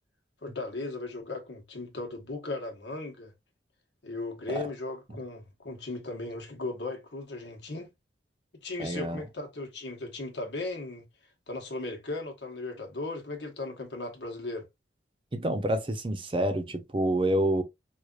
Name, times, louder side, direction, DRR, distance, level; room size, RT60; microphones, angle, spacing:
voice 1, 0.4-3.3 4.0-7.9 8.6-11.0 11.5-14.7, left 2 dB, 75° left, 1.2 m, -37 dB
voice 2, 8.8-9.2 15.3-17.6, right 1 dB, 30° right, 0.7 m, -28 dB
4.9 x 2.4 x 2.4 m
head